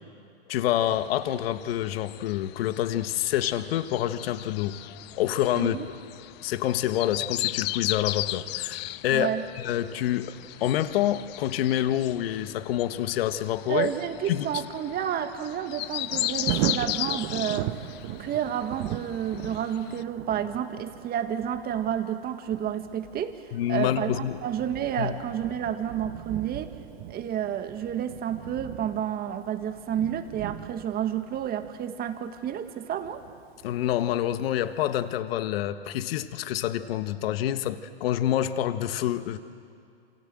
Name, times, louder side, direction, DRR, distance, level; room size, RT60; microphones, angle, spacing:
voice 1, 0.5-4.8 5.1-5.8 6.4-9.3 9.6-10.3 10.6-13.9 14.3-14.6 23.5-24.4 25.0-25.2 33.6-39.4, left 12 dB, 60° left, 10 dB, 1.5 m, -27 dB
sound 1, 0.9-20.0, left 17 dB, 30° left, 0.6 m, -36 dB
voice 2, 5.5-5.9 9.1-9.4 13.7-17.7 18.2-23.4 23.7-26.8 27.1-33.2, right 9 dB, 25° right, 8 dB, 1.8 m, -30 dB
Thunder, 15.8-34.6 35.1-35.2, right 13 dB, 45° right, 1.2 m, -38 dB
27.5 x 27.5 x 7.8 m, 2.4 s
hypercardioid pair, 115°, 33 cm